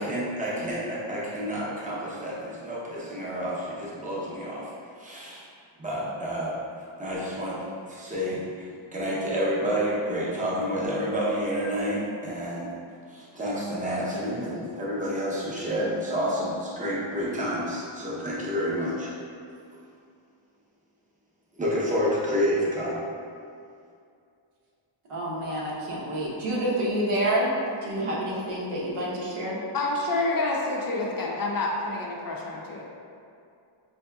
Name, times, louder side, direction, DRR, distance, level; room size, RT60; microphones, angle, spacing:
voice 1, 0.0-4.7 5.0-5.4 5.8-6.6 7.0-7.6 7.9-8.5 8.9-12.7 13.1-19.1 21.6-23.0, equal, 15° right, -7 dB, 0.7 m, -29 dB
voice 2, 25.1-27.5 27.8-29.6, right 1 dB, 85° right, -5 dB, 1.0 m, -28 dB
voice 3, 29.7-32.8, left 2 dB, 45° left, -2 dB, 0.5 m, -28 dB
5.1 x 2.7 x 2.2 m, 2.5 s
wide cardioid pair, 145°, 50 cm